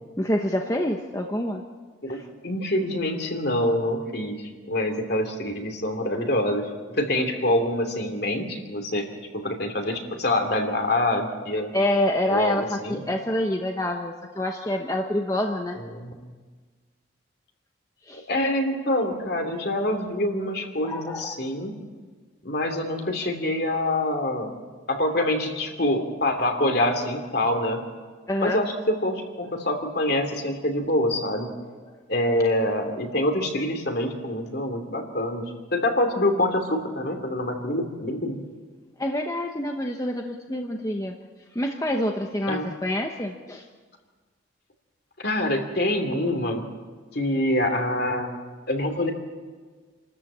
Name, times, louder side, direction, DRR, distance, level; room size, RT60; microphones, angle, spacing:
voice 1, 0.2-1.6 2.1-2.3 11.7-15.8 18.0-18.3 20.8-21.3 28.3-28.6 31.9-32.0 39.0-41.1 41.5-43.6, left 1 dB, 15° left, 3 dB, 0.9 m, -27 dB
voice 2, 2.0-9.1 9.3-11.7 12.3-13.0 15.8-16.2 18.1-21.7 22.4-24.5 24.9-27.8 28.4-31.5 32.1-38.4 42.5-42.7 45.2-46.6 47.1-48.4 48.7-49.1, left 1 dB, 50° left, 5 dB, 2.8 m, -26 dB
27.5 x 13.5 x 8.7 m, 1.5 s
head